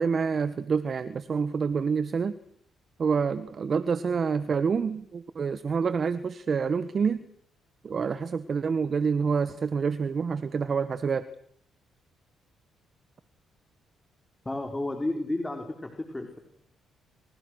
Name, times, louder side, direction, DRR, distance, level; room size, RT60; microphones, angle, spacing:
voice 1, 0.0-2.4 3.0-7.2 7.8-11.3, right 5 dB, 45° right, 13 dB, 1.5 m, -27 dB
voice 2, 14.4-16.4, left 2 dB, 15° left, 4 dB, 4.6 m, -32 dB
29.5 x 28.5 x 6.6 m, 0.67 s
cardioid pair, 90°, 0 cm